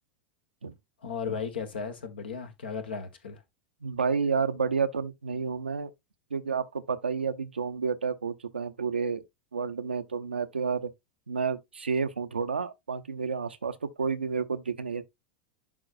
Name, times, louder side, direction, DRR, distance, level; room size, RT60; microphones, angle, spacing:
voice 1, 1.0-3.4, left 5 dB, 75° left, 1.3 m, -35 dB
voice 2, 3.8-5.9 6.3-9.2 9.5-10.9 11.3-15.0, right 5 dB, 80° right, 0.6 m, -30 dB
11.0 x 3.8 x 2.5 m
figure-of-eight pair, 85°, 6 cm